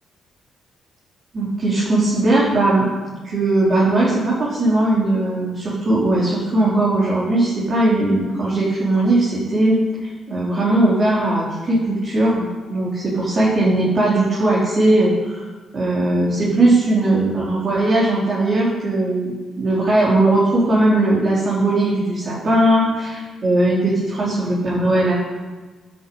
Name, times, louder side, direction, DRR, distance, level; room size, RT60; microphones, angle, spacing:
voice 1, 1.3-2.9 3.2-15.4 15.7-25.1, right 2 dB, 45° right, -6 dB, 3.7 m, -18 dB
10.5 x 7.8 x 8.5 m, 1.3 s
cardioid pair, 90°, 0 cm